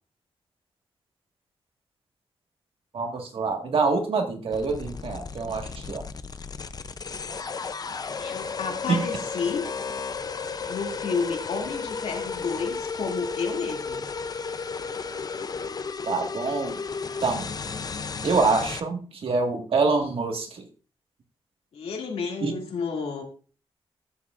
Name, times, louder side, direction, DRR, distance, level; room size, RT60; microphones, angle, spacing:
voice 1, 2.9-6.0 8.9-9.0 16.1-16.8 17.2-17.5 18.2-20.7 22.4-22.5, right 4 dB, 65° right, 3 dB, 1.8 m, -25 dB
sound 1, 4.5-18.8, left 5 dB, 40° left, 0.6 m, -33 dB
voice 2, 8.2-9.6 10.7-14.0 21.7-23.2, left 5 dB, 85° left, 1 dB, 2.4 m, -31 dB
14.0 x 7.6 x 2.5 m, 0.39 s
wide cardioid pair, 100°, 10 cm